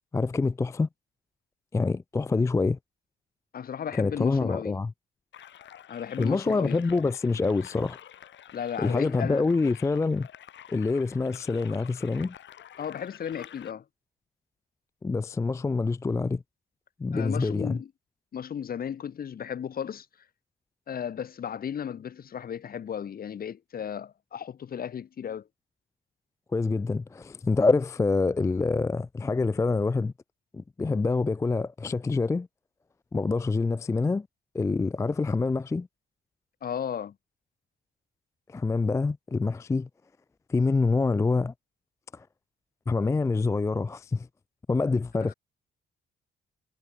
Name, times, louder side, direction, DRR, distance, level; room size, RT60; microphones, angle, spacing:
voice 1, 0.1-0.9 1.7-2.8 4.0-4.9 6.2-8.0 8.8-10.3 10.7-12.3 15.0-16.4 17.0-17.8 26.5-30.1 30.5-32.5 33.1-34.3 34.5-35.9 38.5-39.9 40.5-41.5 42.1-42.3 42.9-44.3 44.7-45.3, left 3 dB, 15° left, 0.4 m, -26 dB
voice 2, 3.5-4.8 5.9-6.8 8.5-9.5 12.8-13.8 17.1-17.9 18.3-20.1 20.9-25.5 36.6-37.1, left 8 dB, 50° left, 1.1 m, -35 dB
sound 1, 5.3-13.7, left 10 dB, 70° left, 4.5 m, -49 dB
cardioid pair, 90°, 20 cm